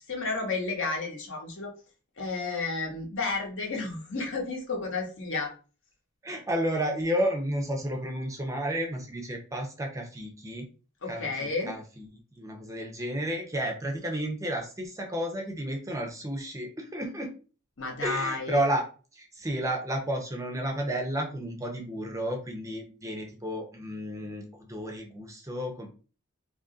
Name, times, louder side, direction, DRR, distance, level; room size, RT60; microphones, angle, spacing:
voice 1, 0.1-1.7 2.2-5.5 11.0-11.7 17.8-18.7, left 3 dB, 60° left, 1 dB, 1.0 m, -32 dB
voice 2, 6.2-10.7 11.1-17.3 18.0-18.8 19.1-25.9, right 1 dB, 15° right, 2 dB, 0.6 m, -32 dB
2.7 x 2.6 x 3.7 m, 0.36 s
head